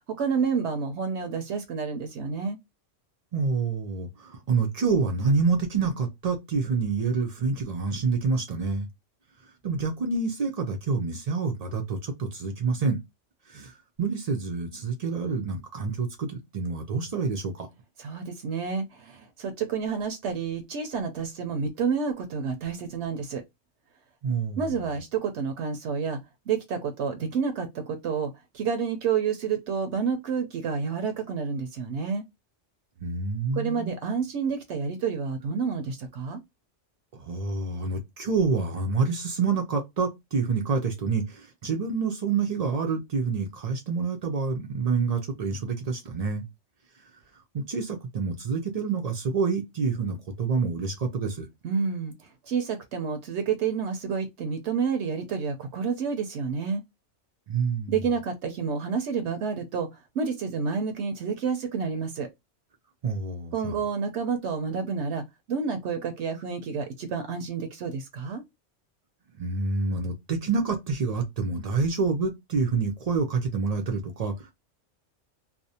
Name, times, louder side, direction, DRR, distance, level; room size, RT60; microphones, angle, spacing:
voice 1, 0.1-2.6 18.0-23.4 24.6-26.2 26.5-32.2 33.5-36.4 51.6-56.8 57.9-59.9 60.1-62.3 63.5-68.4, right 6 dB, 75° right, 0.8 m, -29 dB
voice 2, 3.3-8.9 9.6-13.0 13.5-13.7 14.0-17.7 24.2-24.8 33.0-33.9 37.1-46.4 47.5-51.5 57.5-58.0 63.0-63.8 69.4-74.5, right 4 dB, 60° right, 0.4 m, -27 dB
2.5 x 2.0 x 2.7 m
omnidirectional pair, 1.2 m